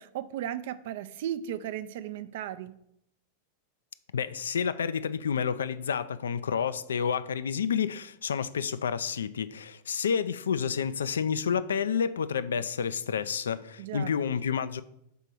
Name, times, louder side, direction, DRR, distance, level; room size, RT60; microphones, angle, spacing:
voice 1, 0.0-2.7 13.8-14.1, right 11 dB, 55° right, 0.4 m, -35 dB
voice 2, 4.1-14.8, left 7 dB, 65° left, 0.3 m, -29 dB
5.3 x 4.4 x 6.1 m
figure-of-eight pair, 90°, 0 cm